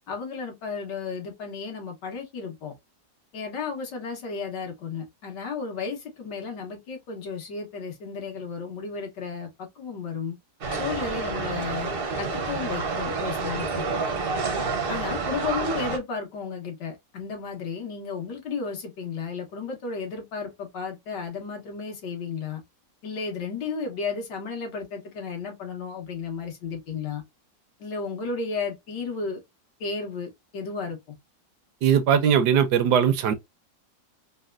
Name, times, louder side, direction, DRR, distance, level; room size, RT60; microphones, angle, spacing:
voice 1, 0.1-2.7 3.3-10.4 10.7-11.9 12.2-13.9 14.9-22.6 23.0-27.2 27.8-29.4 29.8-31.0, left 5 dB, 85° left, 1.8 m, -33 dB
sound 1, 10.6-16.0, right 4 dB, 55° right, 0.6 m, -29 dB
voice 2, 31.8-33.3, right 8 dB, 80° right, 1.2 m, -20 dB
4.2 x 2.2 x 2.3 m
omnidirectional pair, 1.8 m